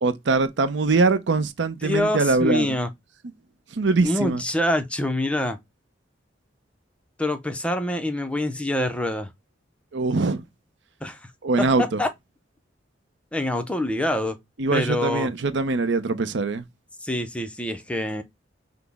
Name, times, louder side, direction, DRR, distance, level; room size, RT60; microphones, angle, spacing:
voice 1, 0.0-2.8 3.7-4.4 9.9-10.4 11.4-12.0 14.6-16.6, right 3 dB, 65° right, 0.6 m, -22 dB
voice 2, 1.8-2.9 4.0-5.6 7.2-9.3 11.0-11.3 11.6-12.1 13.3-14.4 14.7-15.3 17.0-18.2, left 1 dB, 5° left, 0.5 m, -25 dB
5.9 x 2.0 x 3.4 m
head